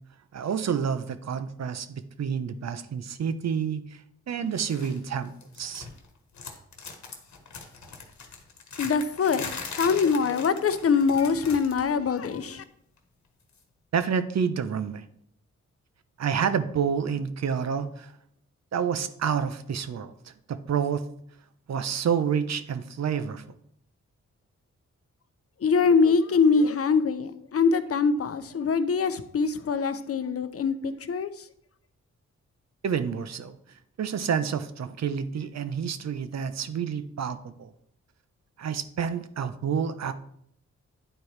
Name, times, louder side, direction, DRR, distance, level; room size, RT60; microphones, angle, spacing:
voice 1, 0.3-4.0 4.3-5.9 13.9-15.1 16.2-18.1 18.7-21.0 21.7-23.4 32.8-33.6 34.0-37.7 38.6-40.1, right 7 dB, 60° right, 11 dB, 0.7 m, -29 dB
sound 1, 4.6-5.0 5.3-6.1 6.3-11.9 12.2-12.4 13.5-13.6, left 5 dB, 70° left, 1.2 m, -40 dB
voice 2, 8.8-9.5 9.8-12.6 25.6-31.5, left 5 dB, 50° left, 11 dB, 0.6 m, -23 dB
9.8 x 4.4 x 3.2 m, 0.71 s
cardioid pair, 60°, 30 cm